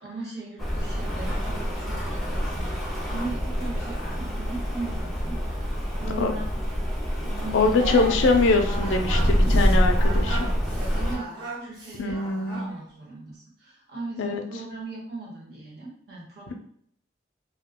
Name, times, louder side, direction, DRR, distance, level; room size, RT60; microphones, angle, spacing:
voice 1, 0.0-6.4 7.2-8.1 8.5-8.8 9.0-9.6 10.8-12.2 12.5-16.5, right 2 dB, 55° right, -4 dB, 1.1 m, -38 dB
Rain, 0.6-11.2, equal, ahead, 0.4 m, -26 dB
voice 2, 7.5-10.5 12.0-12.7 14.2-14.4 16.5-16.6, left 3 dB, 90° left, 5 dB, 0.4 m, -23 dB
Singing, 7.8-12.8, right 3 dB, 20° right, 1.0 m, -37 dB
2.3 x 2.2 x 3.5 m, 0.64 s
head